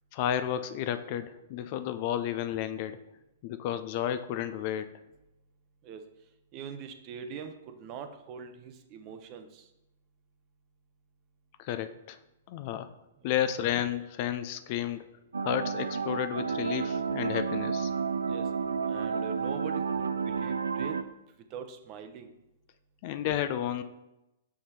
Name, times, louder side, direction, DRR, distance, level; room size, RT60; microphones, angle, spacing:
voice 1, 0.1-3.0 3.4-4.9 11.6-12.2 12.5-12.9 13.2-15.1 15.4-17.9 23.0-23.8, left 10 dB, 45° left, 11 dB, 0.5 m, -32 dB
voice 2, 6.5-9.7 13.2-13.3 18.3-18.5 18.9-21.0 21.5-22.3, right 7 dB, 40° right, 8 dB, 0.8 m, -43 dB
sound 1, 15.3-21.0, right 5 dB, 85° right, 0.4 m, -31 dB
5.9 x 4.9 x 4.2 m, 0.93 s
hypercardioid pair, 120°, 0 cm